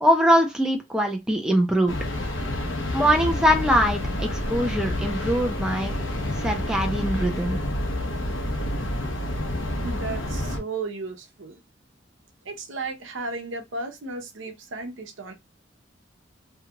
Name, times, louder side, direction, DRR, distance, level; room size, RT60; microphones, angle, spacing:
voice 1, 0.0-2.0 2.9-6.0 6.4-7.6, equal, 5° right, 0.5 m, -22 dB
sound 1, 1.9-10.6, left 1 dB, 85° left, 0.9 m, -28 dB
voice 2, 9.8-11.6 12.4-15.3, right 3 dB, 85° right, 0.8 m, -34 dB
2.9 x 2.4 x 2.8 m
head